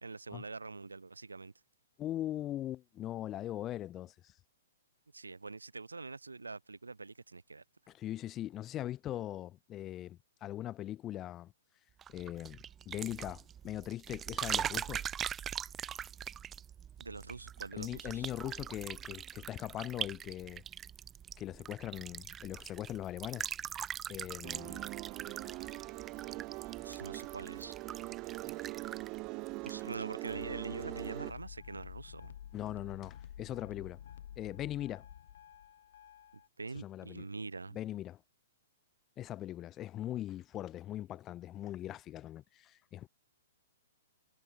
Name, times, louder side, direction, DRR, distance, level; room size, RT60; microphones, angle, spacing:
voice 1, 0.0-1.5 5.1-7.6 17.0-18.3 26.8-27.7 29.6-32.3 36.6-37.8, right 3 dB, 85° right, 1.9 m, -44 dB
voice 2, 2.0-4.3 7.9-11.5 12.1-15.1 17.8-20.6 21.4-23.5 24.1-24.9 32.5-34.0 34.4-35.0 36.7-37.2 37.7-38.2 39.2-43.1, left 13 dB, 25° left, 2.0 m, -41 dB
sound 1, 12.0-30.3 30.6-31.1, right 9 dB, 20° right, 0.4 m, -42 dB
sound 2, 24.4-31.3, right 25 dB, 35° right, 0.9 m, -42 dB
sound 3, 30.3-36.5, left 10 dB, 60° left, 5.9 m, -50 dB
figure-of-eight pair, 120°, 0 cm